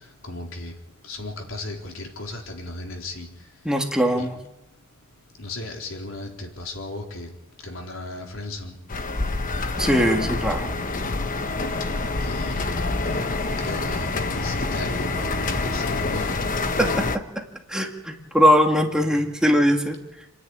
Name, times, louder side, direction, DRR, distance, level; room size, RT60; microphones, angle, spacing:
voice 1, 0.2-0.7 1.0-3.3 4.2-4.3 5.4-7.3 7.6-8.7 12.2-12.8 13.1-13.2 13.6-16.3, left 2 dB, 85° left, 1 dB, 4.0 m, -35 dB
voice 2, 3.7-4.4 9.8-10.7 16.8-17.0 17.7-20.0, equal, 5° right, 2 dB, 2.0 m, -20 dB
sound 1, 8.9-17.2, left 3 dB, 45° left, 1.2 m, -26 dB
28.5 x 10.0 x 9.9 m, 0.90 s
head